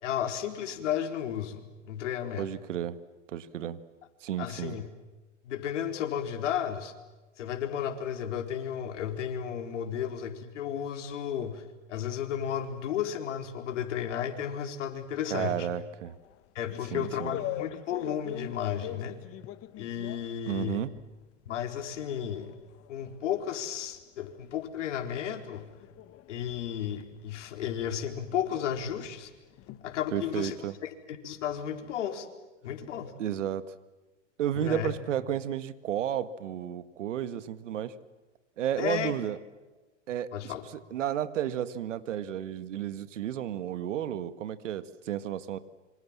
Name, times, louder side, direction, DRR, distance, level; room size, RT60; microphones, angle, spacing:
voice 1, 0.0-2.5 4.4-4.9 5.4-6.9 7.4-11.6 11.9-15.7 16.5-19.2 19.8-20.8 21.5-22.5 22.9-25.7 26.3-29.3 29.8-30.6 30.8-32.3 32.6-33.1 34.5-34.9 38.8-39.2 40.3-40.6, left 9 dB, 70° left, 6 dB, 4.3 m, -33 dB
voice 2, 2.4-3.0 3.3-3.8 4.2-4.8 15.3-16.1 16.9-17.4 20.5-20.9 30.1-30.7 33.2-33.7 34.4-37.9 38.6-39.4 40.1-40.5 40.9-45.6, right 10 dB, 75° right, 13 dB, 1.9 m, -32 dB
sound 1, 16.0-21.2 21.6-30.5, left 13 dB, 40° left, 1.5 m, -44 dB
27.0 x 25.5 x 7.4 m, 1.2 s
hypercardioid pair, 110°, 37 cm